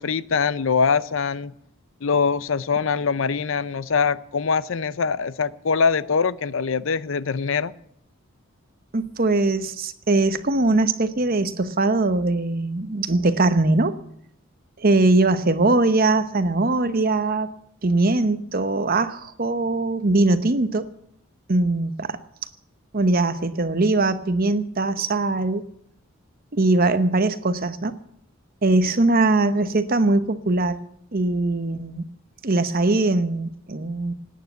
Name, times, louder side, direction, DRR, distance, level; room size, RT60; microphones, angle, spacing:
voice 1, 0.0-1.5 2.0-7.7, left 5 dB, 65° left, 18 dB, 0.6 m, -23 dB
voice 2, 8.9-14.0 14.8-17.5 17.8-20.9 21.5-22.2 22.9-25.7 26.5-27.9 28.6-30.8 31.1-32.0 32.4-34.1, right 2 dB, 45° right, 12 dB, 0.9 m, -21 dB
18.0 x 9.5 x 8.2 m, 0.72 s
head